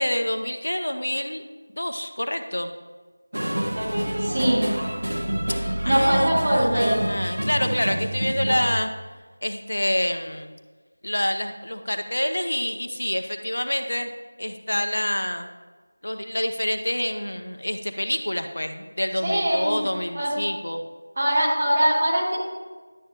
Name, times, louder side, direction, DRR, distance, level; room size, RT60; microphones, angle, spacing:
voice 1, 0.0-1.4 1.8-2.7 5.8-8.9 9.4-10.5 11.0-14.1 14.4-15.5 16.0-20.8, left 1 dB, 70° left, 7 dB, 0.8 m, -27 dB
sound 1, 3.3-8.7, right 1 dB, 70° right, 1.6 m, -27 dB
voice 2, 4.2-4.7 5.8-7.1 19.2-19.8 20.1-20.3 21.2-22.4, right 1 dB, 30° right, -5 dB, 2.1 m, -22 dB
11.0 x 8.8 x 3.0 m, 1.4 s
figure-of-eight pair, 170°, 0 cm